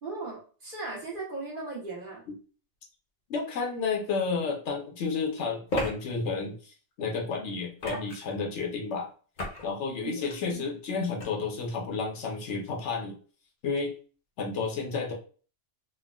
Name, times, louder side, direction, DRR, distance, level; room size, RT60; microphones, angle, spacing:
voice 1, 0.0-2.2 10.0-10.8, right 3 dB, 50° right, -4 dB, 1.1 m, -38 dB
voice 2, 3.3-9.1 9.6-13.2 13.6-13.9 14.4-15.1, left 4 dB, 75° left, 1 dB, 1.0 m, -31 dB
sound 1, 4.2-4.3 5.7-5.9 7.8-8.3 9.4-9.7 10.1-10.4 11.2-11.3, left 1 dB, 45° left, 0.8 m, -33 dB
3.4 x 2.1 x 2.2 m, 0.38 s
omnidirectional pair, 1.2 m